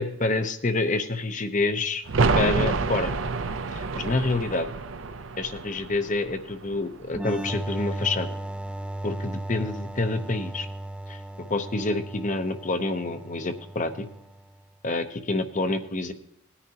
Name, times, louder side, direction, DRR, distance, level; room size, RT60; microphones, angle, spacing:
voice 1, 0.0-2.0 2.3-3.1 3.7-4.7 5.4-8.3 9.0-10.7 11.1-11.2 11.5-14.1 14.8-16.1, left 2 dB, 35° left, 9 dB, 0.8 m, -27 dB
sound 1, 2.0-7.6 7.9-8.0, right 4 dB, 65° right, 0.6 m, -28 dB
sound 2, 7.1-14.6, right 1 dB, 5° right, 0.3 m, -36 dB
18.0 x 9.9 x 2.9 m, 0.79 s
head